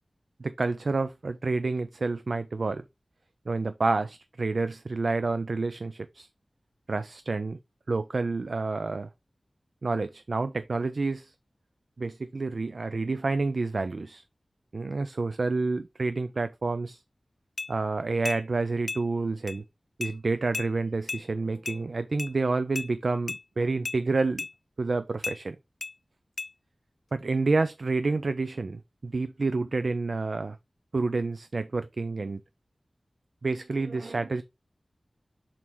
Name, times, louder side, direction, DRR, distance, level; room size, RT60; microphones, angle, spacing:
voice 1, 0.4-2.8 3.5-6.3 6.9-7.6 7.9-9.1 9.8-11.3 12.0-14.2 14.7-17.0 17.7-19.6 20.0-24.5 24.8-25.6 27.1-30.6 30.9-32.4 33.4-34.4, right 3 dB, 70° right, 0.5 m, -29 dB
sound 1, 17.6-17.7 18.3-18.4 18.9-19.0 19.5-19.6 20.0-20.1 20.5-20.7 21.1-21.2 21.7-21.8 22.2-22.3 22.8-22.9 23.3-23.4 23.9-24.0 24.4-24.5 25.2-25.4 25.8-25.9 26.4-26.5, left 3 dB, 65° left, 0.3 m, -34 dB
6.2 x 4.4 x 3.5 m
wide cardioid pair, 70°, 0 cm